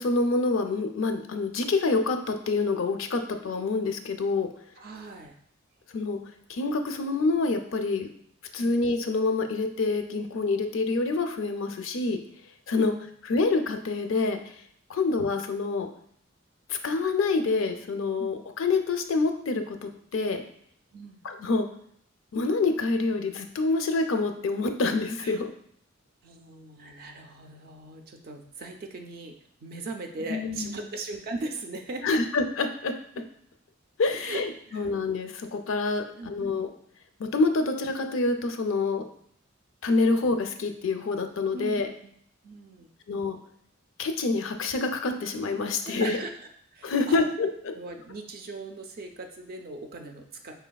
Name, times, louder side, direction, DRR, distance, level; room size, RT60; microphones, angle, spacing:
voice 1, 0.0-4.5 5.9-6.2 6.5-8.1 8.5-12.2 12.7-13.0 13.2-14.5 14.9-15.9 16.7-20.4 21.2-21.7 22.3-25.5 30.3-30.8 32.0-33.2 34.0-34.5 34.7-36.7 37.2-39.0 39.8-41.9 43.1-43.4 44.0-46.2 46.8-47.5, left 3 dB, 70° left, 6 dB, 0.4 m, -27 dB
voice 2, 4.8-5.4 8.6-8.8 12.8-12.9 18.2-18.3 20.9-21.2 25.2-25.4 26.2-32.2 34.1-34.9 36.2-36.3 41.5-42.1 42.4-42.9 45.8-47.2 47.7-50.5, right 2 dB, 45° right, 4 dB, 0.4 m, -39 dB
5.0 x 3.2 x 2.3 m, 0.67 s
head